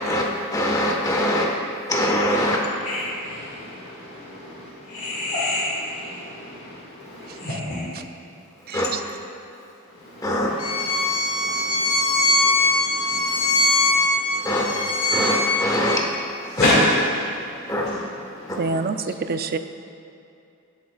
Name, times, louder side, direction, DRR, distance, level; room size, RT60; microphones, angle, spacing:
voice 1, 0.0-1.5 1.9-2.6 8.7-8.9 10.2-10.6 11.4-11.5 12.4-12.5 13.3-13.4 14.3-16.0 16.4-16.6 17.7-17.9 18.5-18.6, left 1 dB, 15° left, -2 dB, 1.3 m, -23 dB
voice 2, 2.8-7.8 9.9-14.7 16.5-18.8, left 1 dB, 50° left, -9 dB, 2.1 m, -29 dB
voice 3, 8.7-9.0 18.5-19.6, right 4 dB, 45° right, 9 dB, 0.4 m, -27 dB
Bowed string instrument, 10.6-16.0, left 2 dB, 85° left, 1.2 m, -21 dB
18.0 x 8.5 x 2.4 m, 2.7 s
head